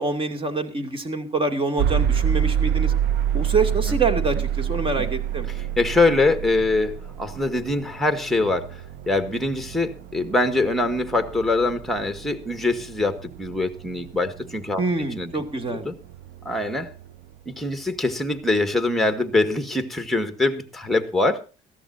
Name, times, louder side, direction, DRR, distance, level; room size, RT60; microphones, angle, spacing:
voice 1, 0.0-2.9 3.3-5.5 14.8-15.9, right 3 dB, 30° right, 7 dB, 2.7 m, -25 dB
sound 1, 1.8-17.7, right 9 dB, 80° right, 0.6 m, -28 dB
voice 2, 5.8-8.8 9.1-14.8 15.2-15.3 15.7-16.0 16.5-16.9 17.5-21.5, left 2 dB, ahead, 8 dB, 1.8 m, -23 dB
20.5 x 14.0 x 2.8 m, 0.31 s
cardioid pair, 110°, 17 cm